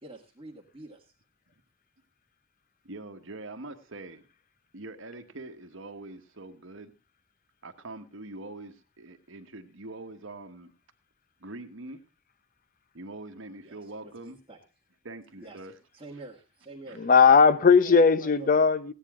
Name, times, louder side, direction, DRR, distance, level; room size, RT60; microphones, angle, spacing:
voice 1, 0.0-1.1 13.6-14.6 15.4-15.6 15.9-17.0 17.8-18.6, right 2 dB, 25° right, 1.9 m, -46 dB
voice 2, 2.8-4.2 4.7-6.9 7.6-10.7 11.4-12.0 12.9-14.4 15.0-15.7 16.9-17.0, right 2 dB, 70° right, 1.3 m, -43 dB
voice 3, 17.0-18.9, left 5 dB, 45° left, 0.7 m, -18 dB
16.5 x 9.9 x 3.7 m
head